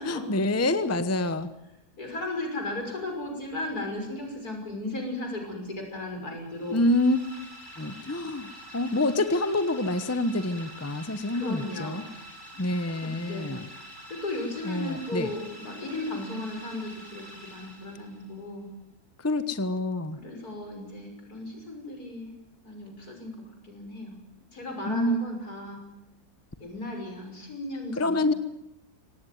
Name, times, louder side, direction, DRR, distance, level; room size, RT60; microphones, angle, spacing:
voice 1, 0.0-1.5 6.7-7.2 7.8-12.0 12.6-13.7 14.6-15.3 19.2-20.2 24.9-25.3 28.0-28.3, left 1 dB, 10° left, 11 dB, 0.9 m, -27 dB
voice 2, 2.0-6.8 11.3-12.2 13.0-13.6 14.1-18.7 20.2-22.4 22.6-24.2 24.5-25.9 26.6-28.4, left 2 dB, 75° left, 2 dB, 6.5 m, -36 dB
sound 1, 6.5-18.3, equal, 30° left, 5.4 m, -46 dB
25.0 x 18.5 x 9.4 m, 0.89 s
omnidirectional pair, 1.6 m